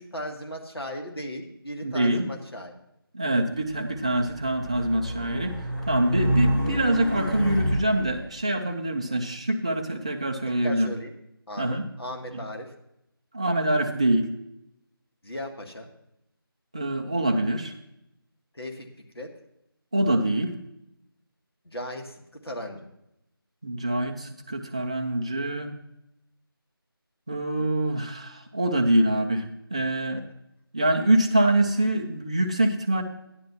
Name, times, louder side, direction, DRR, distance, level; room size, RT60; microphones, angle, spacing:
voice 1, 0.0-2.8 9.1-9.3 10.5-11.2 11.5-12.7 15.2-15.9 18.5-18.9 19.1-19.4 21.6-22.9, left 1 dB, 85° left, 1 dB, 1.8 m, -37 dB
voice 2, 1.8-2.2 3.1-5.5 5.9-10.9 11.6-11.8 13.3-14.3 16.7-17.7 19.9-20.5 23.6-25.7 27.3-29.5 29.7-30.2 30.7-33.0, right 1 dB, 15° right, 4 dB, 0.4 m, -25 dB
Race car auto racing, 3.8-8.2, equal, 55° left, 3.8 m, -28 dB
12.0 x 10.5 x 2.8 m, 0.82 s
figure-of-eight pair, 165°, 13 cm